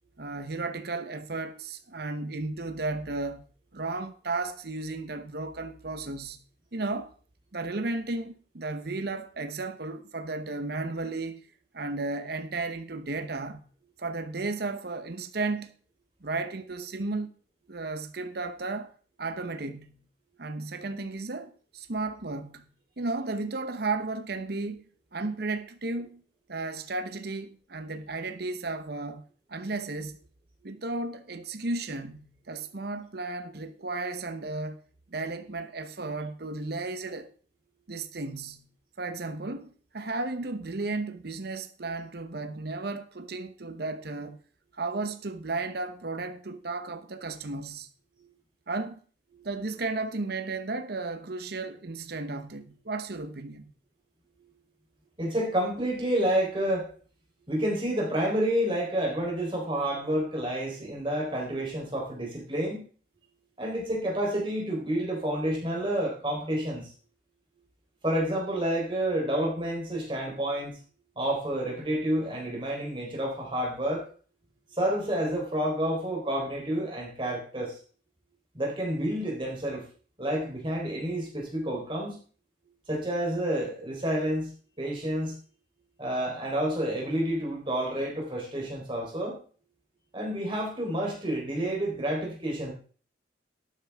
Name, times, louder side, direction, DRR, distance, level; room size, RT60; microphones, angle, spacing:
voice 1, 0.2-3.5 3.7-6.4 6.7-7.1 7.5-11.5 11.7-13.7 14.0-15.7 16.2-17.3 17.7-18.9 19.2-20.0 20.4-22.7 23.0-24.8 25.1-26.2 26.5-29.2 29.5-30.2 30.6-34.8 35.1-37.3 37.9-38.7 39.0-44.4 44.7-47.9 48.7-49.0 49.4-53.7, right 3 dB, 55° right, 0.9 m, -34 dB
voice 2, 55.2-56.9 57.5-62.9 63.6-66.9 68.0-70.8 71.2-74.1 74.7-77.8 78.5-79.9 80.2-82.2 82.9-84.5 84.8-85.3 86.0-89.4 90.1-92.7, right 1 dB, 25° right, 3.8 m, -29 dB
12.0 x 9.2 x 3.5 m
head